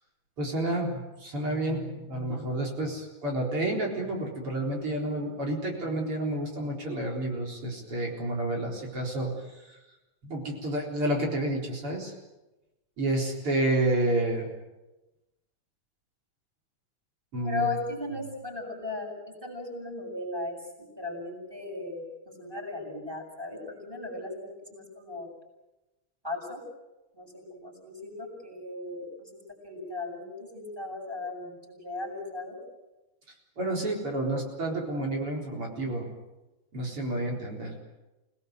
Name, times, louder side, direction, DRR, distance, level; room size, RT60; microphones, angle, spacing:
voice 1, 0.4-9.3 10.2-12.1 13.0-14.5 17.3-17.7 33.6-36.1 36.7-37.7, right 1 dB, 45° right, -1 dB, 4.9 m, -30 dB
voice 2, 17.4-25.3 26.2-26.6 27.1-32.6, left 3 dB, 5° right, 2 dB, 8.0 m, -37 dB
28.5 x 19.0 x 7.9 m, 1.0 s
omnidirectional pair, 3.4 m